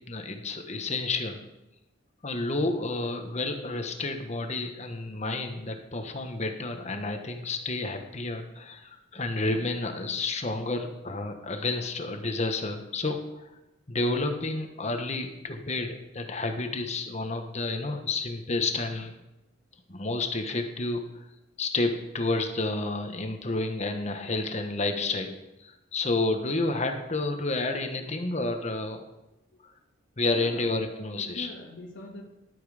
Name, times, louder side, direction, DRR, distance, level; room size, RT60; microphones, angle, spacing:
voice 1, 0.1-1.4 2.2-13.5 13.9-19.1 19.9-21.0 21.6-25.3 25.6-29.0 30.2-31.5, left 2 dB, 35° left, 6 dB, 1.3 m, -30 dB
voice 2, 30.3-32.3, left 1 dB, 70° left, -4 dB, 1.9 m, -44 dB
11.5 x 8.6 x 5.0 m, 0.94 s
head